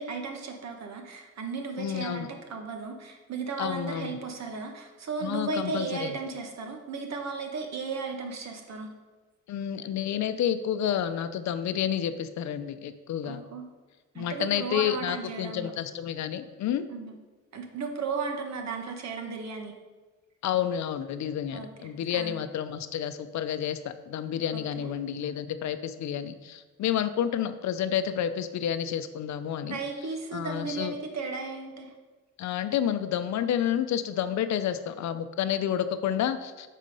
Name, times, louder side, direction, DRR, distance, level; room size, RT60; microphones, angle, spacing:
voice 1, 0.0-8.9 13.2-13.7 14.1-15.7 16.9-17.2 17.5-19.7 21.5-22.4 24.5-24.9 29.7-31.9, right 4 dB, 60° right, 4 dB, 1.3 m, -35 dB
voice 2, 1.8-2.3 3.6-4.1 5.2-6.1 9.5-13.4 14.2-16.9 20.4-29.8 30.3-30.9 32.4-36.7, left 10 dB, 65° left, 11 dB, 0.6 m, -30 dB
8.2 x 4.2 x 5.4 m, 1.2 s
cardioid pair, 90°, 30 cm